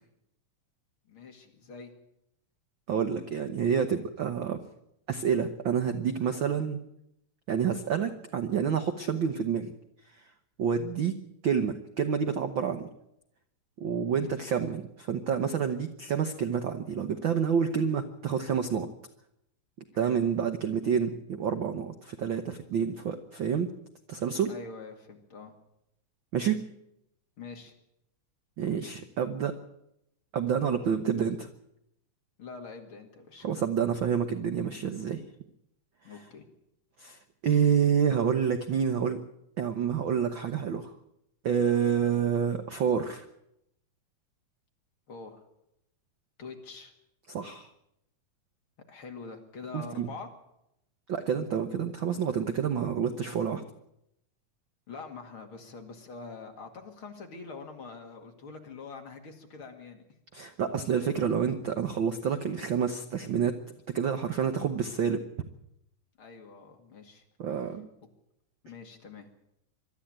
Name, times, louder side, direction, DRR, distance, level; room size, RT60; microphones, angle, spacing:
voice 1, 1.1-1.9 14.0-14.5 19.9-20.2 24.5-25.5 27.4-27.7 32.4-33.5 36.0-36.4 45.1-45.4 46.4-46.9 48.9-50.3 54.9-60.0 66.2-67.2 68.6-69.3, left 4 dB, 45° left, 3 dB, 2.8 m, -45 dB
voice 2, 2.9-4.6 5.1-6.8 7.5-9.7 10.6-11.1 11.4-12.9 13.8-18.9 19.9-23.7 24.1-24.5 26.3-26.7 28.6-29.5 30.3-31.5 33.4-35.2 37.0-39.2 39.6-40.9 41.4-43.2 47.3-47.7 49.7-50.1 51.1-53.6 60.3-63.6 63.9-65.2 67.4-67.9, right 7 dB, 65° right, 8 dB, 1.2 m, -28 dB
23.0 x 13.0 x 8.9 m, 0.82 s
omnidirectional pair, 3.5 m